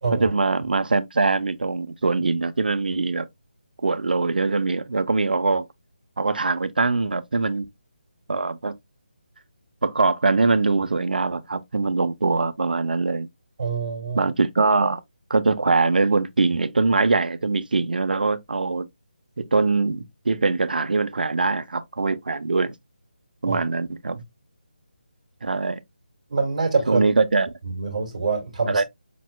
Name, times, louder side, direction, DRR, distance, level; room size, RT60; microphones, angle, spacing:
voice 1, 0.1-3.3 3.8-5.6 6.2-7.7 8.3-8.7 9.8-13.3 14.1-15.0 15.3-18.9 19.4-22.7 23.4-24.2 25.4-25.8 26.9-27.5 28.7-28.8, right 3 dB, 65° right, 0.7 m, -22 dB
voice 2, 13.6-14.3 23.5-23.6 26.3-27.0 27.6-28.8, right 4 dB, 40° right, 2.1 m, -25 dB
5.5 x 4.1 x 2.2 m
figure-of-eight pair, 170°, 5 cm